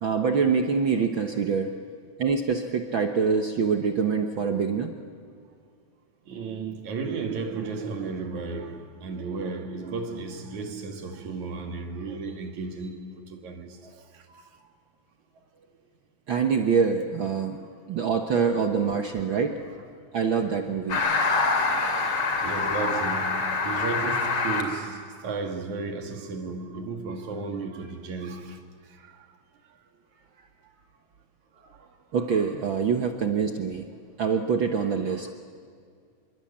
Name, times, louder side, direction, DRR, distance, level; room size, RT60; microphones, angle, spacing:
voice 1, 0.0-1.7 2.2-4.9 16.3-17.6 17.9-19.6 20.1-21.0 22.6-22.7 32.1-33.9 34.2-35.3, right 6 dB, 55° right, 1.6 m, -25 dB
voice 2, 6.3-14.5 18.0-18.1 21.3-28.6 28.9-29.3 30.4-30.5 31.6-31.9 32.3-32.6 35.0-35.3, right 4 dB, 75° right, 3.6 m, -35 dB
sound 1, 20.9-24.6, left 4 dB, 50° left, 3.6 m, -25 dB
27.0 x 23.5 x 8.7 m
omnidirectional pair, 3.3 m